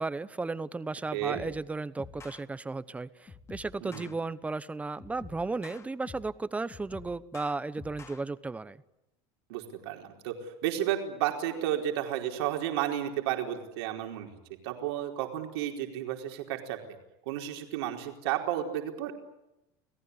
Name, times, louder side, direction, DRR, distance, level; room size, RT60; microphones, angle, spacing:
voice 1, 0.0-8.8, right 3 dB, 10° right, 15 dB, 1.0 m, -35 dB
voice 2, 1.1-1.4 3.8-4.1 9.5-10.3 10.6-14.3 14.6-16.8 17.3-19.1, right 12 dB, 85° right, 3 dB, 4.6 m, -32 dB
sound 1, 1.3-1.6 2.0-2.4 3.3-4.1 5.0-6.4 6.7-8.2, left 4 dB, 20° left, 2.3 m, -48 dB
29.5 x 18.5 x 9.7 m, 0.88 s
supercardioid pair, 140°, 13 cm